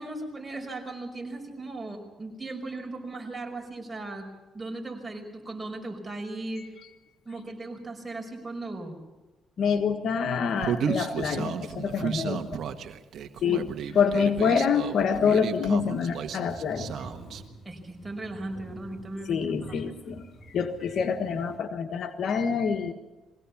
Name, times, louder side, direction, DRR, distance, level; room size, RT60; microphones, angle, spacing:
voice 1, 0.0-4.3 4.5-6.7 7.3-8.9 13.5-13.6 17.6-19.9, right 2 dB, 15° right, 1 dB, 5.3 m, -37 dB
voice 2, 9.6-12.6 13.4-13.7 13.9-16.9 19.3-22.9, left 6 dB, 65° left, 7 dB, 1.4 m, -26 dB
Human voice, 10.6-17.4, right 7 dB, 65° right, 1.4 m, -33 dB
sound 1, 16.2-21.6, right 1 dB, 30° left, 4.9 m, -47 dB
22.0 x 17.0 x 7.2 m, 1.2 s
cardioid pair, 90°, 0 cm